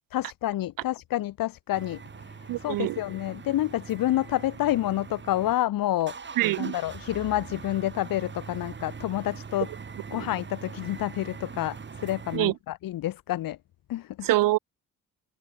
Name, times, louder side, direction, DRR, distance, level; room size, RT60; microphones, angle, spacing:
voice 1, 0.1-6.2 6.6-9.7 10.1-13.6 13.9-14.3, left 14 dB, 80° left, 1.8 m, -29 dB
sound 1, 1.7-5.5 5.8-12.4, right 5 dB, 35° right, 5.7 m, -42 dB
voice 2, 2.5-3.0 6.4-6.7 10.1-10.3 12.3-12.5 14.2-14.6, right 17 dB, 75° right, 0.6 m, -24 dB
cardioid pair, 125°, 34 cm